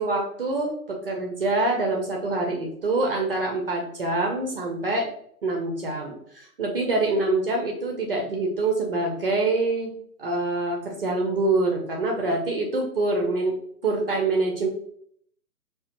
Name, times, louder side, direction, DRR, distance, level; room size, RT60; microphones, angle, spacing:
voice 1, 0.0-5.1 5.4-9.9 10.2-14.7, right 2 dB, 40° right, 0 dB, 0.6 m, -25 dB
4.7 x 2.5 x 2.4 m, 0.65 s
figure-of-eight pair, 130°, 47 cm